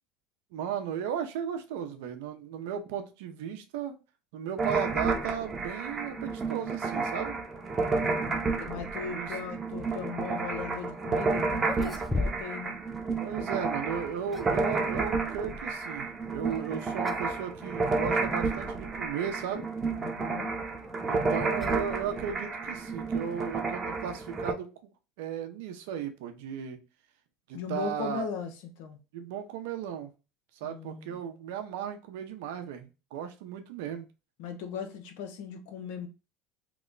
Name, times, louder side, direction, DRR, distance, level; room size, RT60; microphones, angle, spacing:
voice 1, 0.5-3.9 4.3-7.4 9.1-9.3 13.2-19.7 21.0-24.7 25.2-26.8 27.5-28.3 29.1-30.1 30.6-34.1, right 8 dB, 80° right, 0.6 m, -35 dB
sound 1, 4.6-24.5, right 4 dB, 25° right, 0.8 m, -31 dB
voice 2, 7.9-12.8 20.0-20.6 27.5-29.0 30.6-31.2 34.4-36.1, left 6 dB, 75° left, 0.7 m, -38 dB
sound 2, 11.1-11.2 11.6-12.7 12.9-13.1 13.9-14.7 16.5-16.7 17.0-17.3 17.6-17.7 18.5-18.6 20.4-22.5, left 2 dB, 10° left, 0.3 m, -37 dB
3.0 x 2.1 x 3.7 m
supercardioid pair, 110°, 0 cm